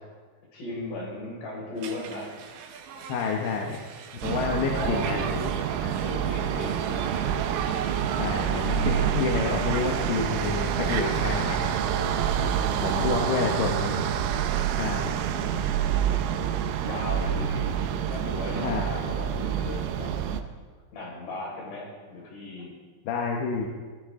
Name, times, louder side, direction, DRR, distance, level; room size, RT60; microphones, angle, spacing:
voice 1, 0.5-2.4 4.7-7.4 12.4-13.6 15.9-16.4 16.8-17.7 18.1-20.1 20.9-22.8, left 2 dB, 55° left, -4 dB, 7.2 m, -37 dB
Conversation, 1.8-11.5, right 7 dB, 70° right, 3.1 m, -40 dB
voice 2, 3.1-3.8 4.2-5.2 5.8-5.9 8.2-11.8 12.8-14.0 14.8-15.1 18.6-18.9 23.0-23.7, left 5 dB, 70° left, 0 dB, 3.1 m, -29 dB
sound 1, 4.2-20.4, right 9 dB, 85° right, 3.6 m, -27 dB
22.5 x 14.0 x 3.7 m, 1.5 s
omnidirectional pair, 5.9 m